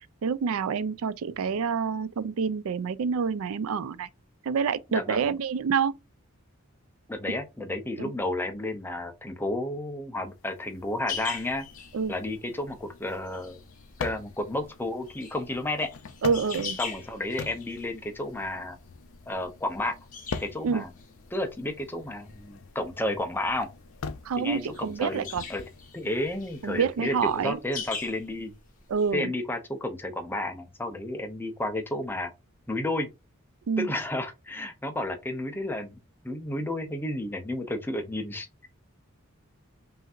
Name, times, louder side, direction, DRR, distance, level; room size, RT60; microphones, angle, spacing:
voice 1, 0.2-4.1 4.5-5.9 8.0-8.1 11.9-12.1 16.2-16.8 20.6-20.8 24.3-25.4 26.6-27.6 28.9-29.3 33.7-33.9, right 6 dB, 75° right, 0.4 m, -27 dB
voice 2, 4.9-5.3 7.1-11.7 12.1-13.6 14.0-15.9 16.8-18.8 19.3-19.9 20.4-20.9 21.3-23.7 24.4-25.6 25.9-28.5 29.1-32.3 32.7-33.1 33.8-36.0 36.2-38.7, left 1 dB, 10° left, 0.6 m, -32 dB
sound 1, 10.3-26.9, left 5 dB, 70° left, 0.5 m, -44 dB
sound 2, 11.1-29.1, left 6 dB, 40° left, 1.2 m, -43 dB
5.6 x 2.7 x 2.5 m
head